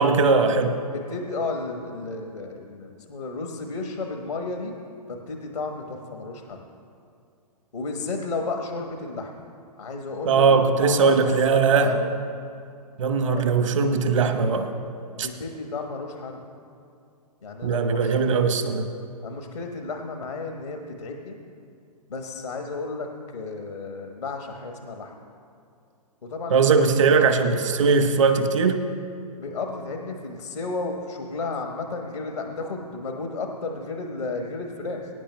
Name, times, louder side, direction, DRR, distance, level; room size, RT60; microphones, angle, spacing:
voice 1, 0.0-0.8 10.2-11.9 13.0-14.7 15.2-15.3 17.6-18.9 26.5-28.8, right 5 dB, 50° right, 7 dB, 1.2 m, -20 dB
voice 2, 0.9-4.7 5.1-6.6 7.7-9.4 9.8-11.2 11.5-12.1 13.3-13.5 15.2-16.4 17.4-18.1 19.2-21.4 22.1-25.1 26.2-26.8 29.4-35.1, left 3 dB, 70° left, 3 dB, 1.2 m, -33 dB
24.0 x 10.5 x 2.2 m, 2.4 s
figure-of-eight pair, 120°, 20 cm